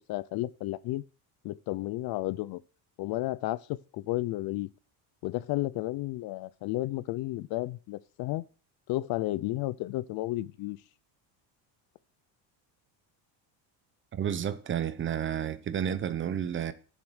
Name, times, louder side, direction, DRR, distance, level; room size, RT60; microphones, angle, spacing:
voice 1, 0.1-1.0 1.4-2.6 3.0-4.7 5.2-8.4 8.9-10.8, left 17 dB, 55° left, 0.6 m, -32 dB
voice 2, 14.1-16.7, right 9 dB, 25° right, 0.8 m, -31 dB
13.0 x 7.5 x 6.3 m
cardioid pair, 165°, 44 cm